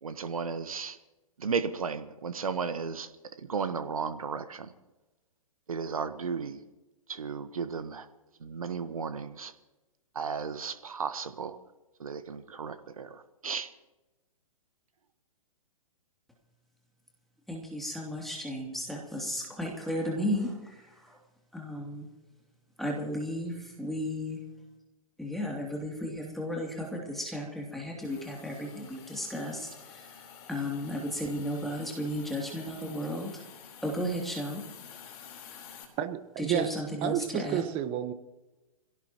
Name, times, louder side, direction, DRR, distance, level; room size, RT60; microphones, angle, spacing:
voice 1, 0.0-1.0 1.4-3.1 3.4-4.7 5.7-6.6 7.1-8.1 8.4-9.5 10.1-11.6 12.0-13.7, right 5 dB, 75° right, 11 dB, 1.3 m, -34 dB
voice 2, 17.5-21.2 21.5-22.1 22.8-24.4 25.2-33.4 33.8-34.6 36.4-37.6, equal, ahead, -1 dB, 2.9 m, -34 dB
Hiss, 28.0-35.8, left 7 dB, 40° left, 4.1 m, -49 dB
voice 3, 36.0-36.7 37.0-38.1, right 11 dB, 30° right, 10 dB, 1.3 m, -30 dB
26.5 x 17.0 x 3.0 m, 1.1 s
figure-of-eight pair, 120°, 18 cm